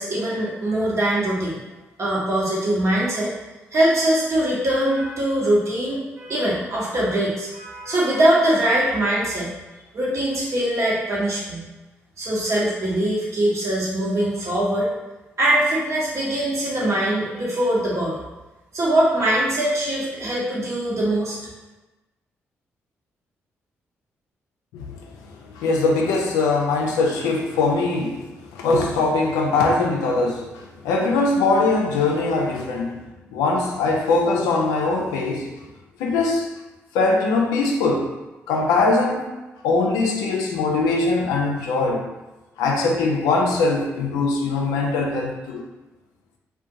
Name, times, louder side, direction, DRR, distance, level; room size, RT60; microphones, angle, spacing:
voice 1, 0.0-1.6 2.0-3.4 3.7-9.5 9.9-11.7 12.2-14.9 15.4-18.2 18.7-21.4, right 1 dB, 55° right, -6 dB, 0.9 m, -22 dB
voice 2, 25.3-33.0 33.3-35.5 36.0-36.5 36.9-38.2 38.5-39.3 39.6-42.1 42.6-45.6, left 3 dB, 80° left, 0 dB, 0.4 m, -21 dB
2.5 x 2.2 x 2.6 m, 1.1 s
hypercardioid pair, 40°, 6 cm